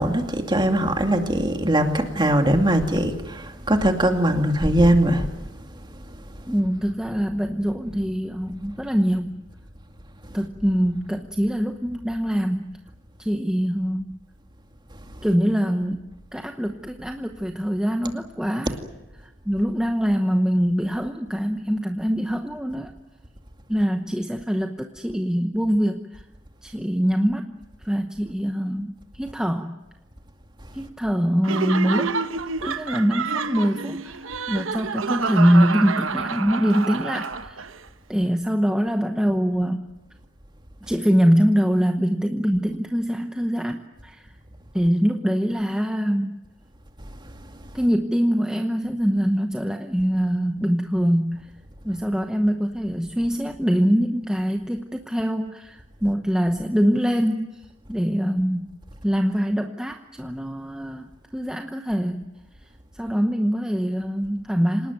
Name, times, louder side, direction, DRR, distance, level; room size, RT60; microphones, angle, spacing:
voice 1, 0.0-5.3, right 1 dB, 20° right, 2.3 m, -20 dB
voice 2, 6.5-9.4 10.3-12.8 13.2-14.2 15.2-18.8 19.2-22.9 23.7-26.2 26.6-27.6 27.8-29.7 30.7-32.2 32.6-37.6 38.1-39.9 40.9-44.3 44.7-46.4 47.7-51.5 51.8-57.6 57.9-58.7 59.0-61.1 61.3-62.3 62.9-64.9, equal, 5° right, 0.9 m, -23 dB
Laughter, 31.4-37.8, right 4 dB, 85° right, 1.1 m, -28 dB
27.0 x 19.0 x 9.3 m
head